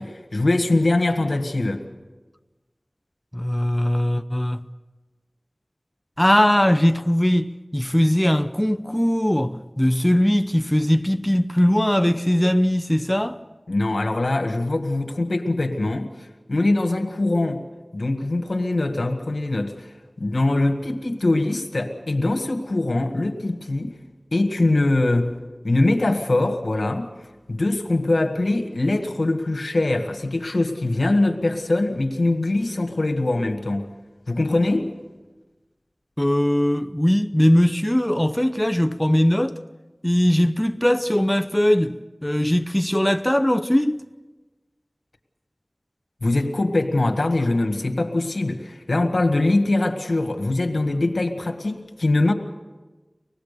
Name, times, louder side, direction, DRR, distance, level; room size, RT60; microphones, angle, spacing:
voice 1, 0.0-1.8 13.7-16.1 16.5-17.6 17.9-19.9 20.2-24.0 24.3-25.3 25.6-27.1 27.5-33.9 34.3-34.9 46.2-52.3, left 2 dB, 90° left, 1.7 m, -22 dB
voice 2, 3.3-4.6 6.2-13.4 36.2-39.6 40.0-41.9 42.2-44.0, equal, 10° left, 0.7 m, -20 dB
24.5 x 18.5 x 6.8 m
wide cardioid pair, 45°, 0 cm